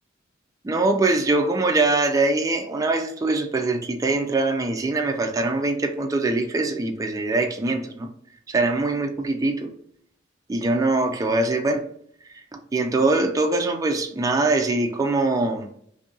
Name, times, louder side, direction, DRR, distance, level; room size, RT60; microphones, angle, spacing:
voice 1, 0.6-8.1 8.5-9.7 10.5-11.8 12.5-15.7, right 2 dB, 15° right, 0.3 m, -23 dB
2.7 x 2.6 x 3.6 m
head